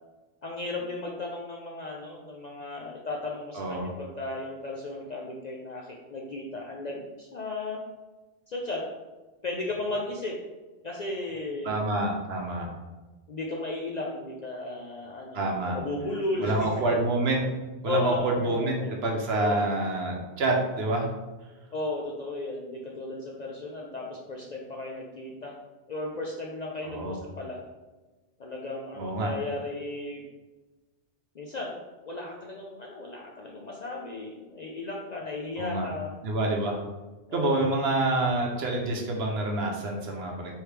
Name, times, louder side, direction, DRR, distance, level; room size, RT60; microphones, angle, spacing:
voice 1, 0.4-7.8 8.5-8.8 9.4-10.3 10.8-11.8 13.3-17.0 17.8-18.9 19.3-19.7 21.7-25.6 25.9-27.6 28.4-30.3 31.3-36.1 37.3-37.7, left 2 dB, 55° left, -1 dB, 0.5 m, -35 dB
voice 2, 3.5-3.9 11.6-12.7 15.3-15.8 16.4-17.4 17.8-21.1 26.8-27.2 28.9-29.3 35.6-35.9 36.2-36.8 37.3-40.5, right 2 dB, 65° right, 1 dB, 1.0 m, -27 dB
4.6 x 3.1 x 3.3 m, 1.2 s
omnidirectional pair, 1.2 m